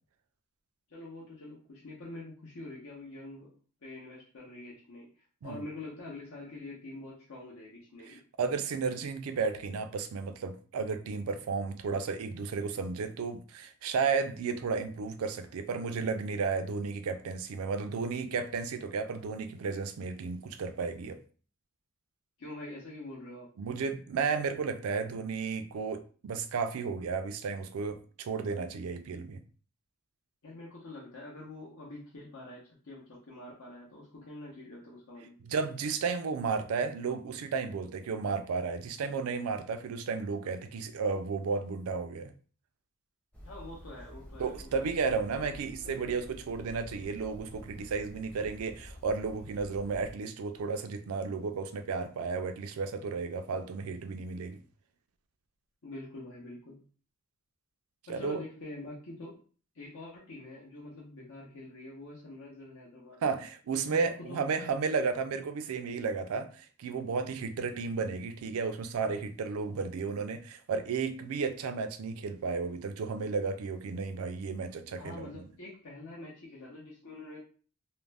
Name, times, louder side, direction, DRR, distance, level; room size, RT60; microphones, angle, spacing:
voice 1, 0.9-3.5 3.8-5.1 5.4-8.2 22.4-23.5 30.4-35.3 43.4-46.1 55.8-56.8 58.1-59.3 59.7-63.2 63.9-64.4 75.0-77.4, left 2 dB, 70° left, 0.8 m, -45 dB
voice 2, 8.1-21.2 23.6-29.4 35.4-42.3 44.4-54.6 58.1-58.4 63.2-75.4, right 5 dB, 80° right, 0.4 m, -33 dB
sound 1, 43.3-50.1, equal, 5° left, 0.6 m, -49 dB
2.5 x 2.0 x 3.2 m
head